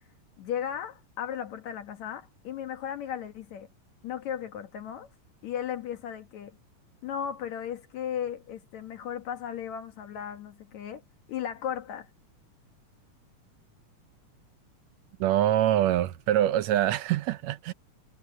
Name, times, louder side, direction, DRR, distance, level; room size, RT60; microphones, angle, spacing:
voice 1, 0.4-3.7 4.0-5.1 5.4-6.6 7.0-11.0 11.3-12.1, left 9 dB, 65° left, 2.4 m, -35 dB
voice 2, 15.2-17.7, right 12 dB, 80° right, 1.6 m, -24 dB
omnidirectional pair, 3.8 m